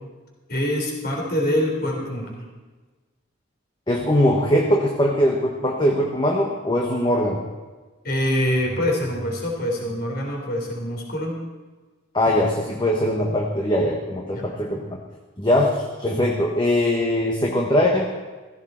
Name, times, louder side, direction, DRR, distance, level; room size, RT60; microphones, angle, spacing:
voice 1, 0.5-2.4 8.0-11.4 14.3-14.5, left 1 dB, 50° left, 0 dB, 3.8 m, -25 dB
voice 2, 3.9-7.4 12.1-15.0 15.4-18.1, left 1 dB, 20° left, 0 dB, 1.3 m, -21 dB
16.0 x 15.5 x 4.4 m, 1.3 s
head